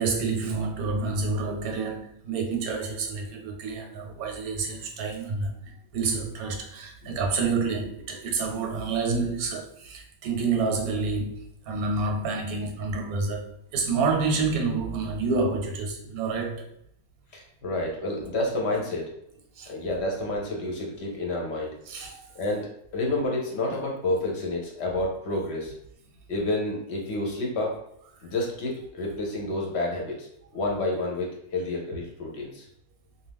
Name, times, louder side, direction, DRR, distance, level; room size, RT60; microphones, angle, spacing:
voice 1, 0.0-5.6 5.9-16.7 19.5-19.7 21.9-22.3, right 4 dB, 80° right, 1.1 m, -28 dB
voice 2, 17.3-19.1 19.7-21.8 22.3-25.7 26.3-27.8 28.2-30.3 30.5-32.7, left 2 dB, 60° left, 0.8 m, -29 dB
2.5 x 2.3 x 3.4 m
omnidirectional pair, 1.5 m